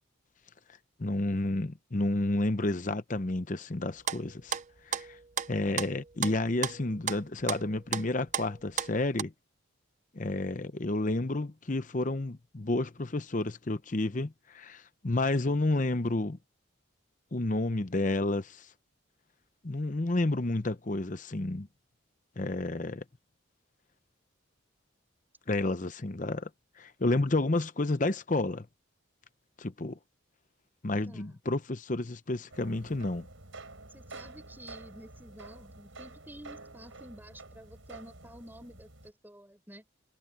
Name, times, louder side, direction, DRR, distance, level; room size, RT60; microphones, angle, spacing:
voice 1, 1.0-4.6 4.9-5.2 5.5-9.3 10.1-16.4 17.3-18.7 19.6-21.7 22.4-23.0 25.5-26.5 26.8-28.7 29.6-30.0 30.8-33.3, left 2 dB, 40° left, 0.8 m, -30 dB
sound 1, 4.1-9.2, right 7 dB, 35° right, 0.6 m, -34 dB
sound 2, 32.5-39.1, right 2 dB, 75° right, 6.0 m, -49 dB
voice 2, 33.9-39.8, equal, 10° right, 4.8 m, -50 dB
head